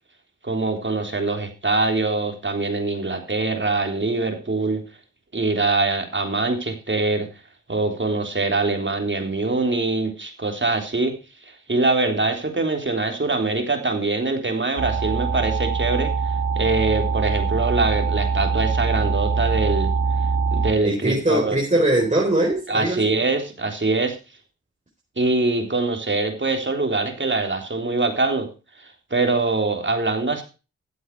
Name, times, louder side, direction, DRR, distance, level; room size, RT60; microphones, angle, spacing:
voice 1, 0.4-4.8 5.3-7.3 7.7-11.2 11.4-16.1 16.6-19.9 20.5-21.6 22.7-24.2 25.2-28.5 28.8-30.4, right 3 dB, 40° right, 4 dB, 3.6 m, -23 dB
sound 1, 14.8-20.7, right 4 dB, 85° right, 2.5 m, -23 dB
voice 2, 20.8-23.0, right 1 dB, 25° right, -2 dB, 4.3 m, -21 dB
12.5 x 8.1 x 4.7 m, 0.32 s
cardioid pair, 45°, 29 cm